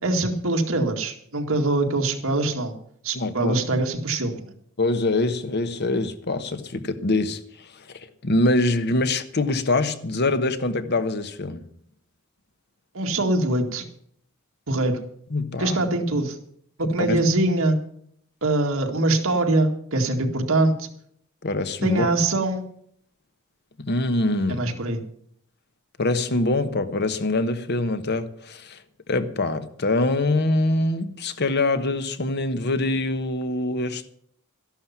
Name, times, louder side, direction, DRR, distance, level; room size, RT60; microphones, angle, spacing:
voice 1, 0.0-2.7 3.0-4.5 12.9-13.9 14.7-15.0 15.6-16.4 16.9-17.8 18.4-20.9 21.8-22.6 24.5-25.0, right 2 dB, 70° right, 2.1 m, -23 dB
voice 2, 3.1-3.6 4.8-7.4 7.9-11.6 15.3-15.8 16.8-17.2 21.4-22.1 23.8-24.7 26.0-28.8 29.1-34.1, left 2 dB, 50° left, 1.1 m, -24 dB
13.0 x 11.5 x 5.9 m
head